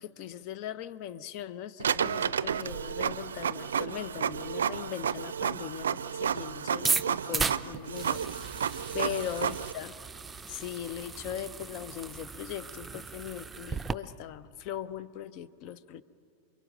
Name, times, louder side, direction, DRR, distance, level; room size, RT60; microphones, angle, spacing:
voice 1, 0.0-8.5 8.9-10.0 10.5-16.0, left 10 dB, 45° left, 17 dB, 0.8 m, -39 dB
Printer, 1.8-9.7, right 7 dB, 65° right, 0.5 m, -32 dB
sound 1, 6.8-13.9, right 4 dB, 15° right, 0.6 m, -35 dB
28.5 x 22.5 x 6.4 m, 2.5 s
figure-of-eight pair, 90°, 0 cm